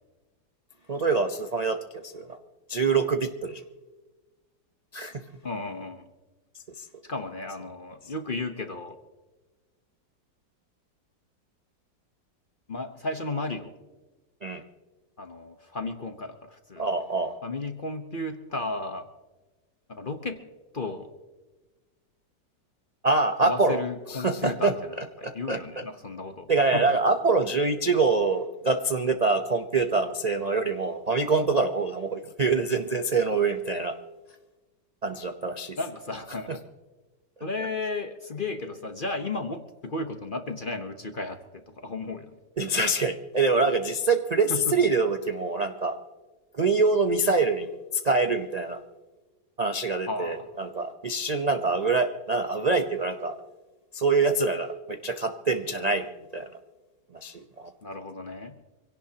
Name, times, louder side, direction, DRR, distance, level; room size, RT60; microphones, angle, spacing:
voice 1, 0.9-2.4 2.7-3.6 4.9-5.2 6.8-6.9 14.4-14.6 16.8-17.4 23.0-23.8 24.1-25.8 26.5-33.9 35.0-35.8 42.6-46.0 46.5-48.8 49.6-53.4 53.9-56.5 57.1-57.7, right 3 dB, 45° right, 6 dB, 0.5 m, -25 dB
voice 2, 5.4-6.0 7.0-9.0 12.7-13.7 15.2-16.9 17.4-19.1 19.9-20.5 20.7-21.1 23.4-26.8 35.8-36.6 37.4-42.4 44.5-44.8 50.1-50.5 57.8-58.6, left 3 dB, 35° left, 7 dB, 0.9 m, -34 dB
25.5 x 17.5 x 2.9 m, 1.2 s
omnidirectional pair, 1.9 m